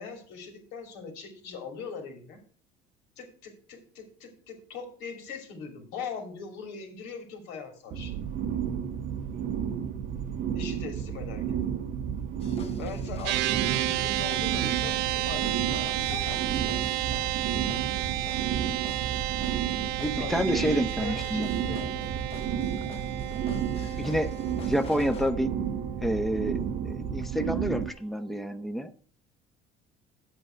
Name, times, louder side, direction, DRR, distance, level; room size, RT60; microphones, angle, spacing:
voice 1, 0.0-2.4 3.2-8.2 10.5-11.6 12.8-16.7 20.0-22.3, left 5 dB, 85° left, 4 dB, 2.7 m, -41 dB
sound 1, 7.9-27.9, right 8 dB, 55° right, 0.8 m, -32 dB
sound 2, 12.4-25.3, left 6 dB, 35° left, 1.2 m, -48 dB
sound 3, 13.3-26.8, right 16 dB, 90° right, 0.5 m, -32 dB
voice 2, 20.0-21.5 24.0-24.3 24.6-25.5 26.0-26.6 26.8-28.9, equal, ahead, 9 dB, 0.7 m, -28 dB
10.0 x 7.9 x 4.5 m, 0.44 s
cardioid pair, 125°, 17 cm